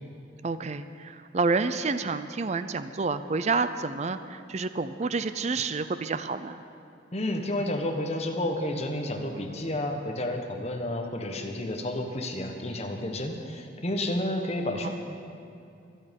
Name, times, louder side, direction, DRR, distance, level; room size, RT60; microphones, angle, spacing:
voice 1, 0.4-6.6 14.8-14.9, right 4 dB, 35° right, 11 dB, 0.4 m, -29 dB
voice 2, 7.1-14.9, left 1 dB, 35° left, 3 dB, 1.3 m, -31 dB
22.5 x 8.9 x 5.3 m, 2.6 s
head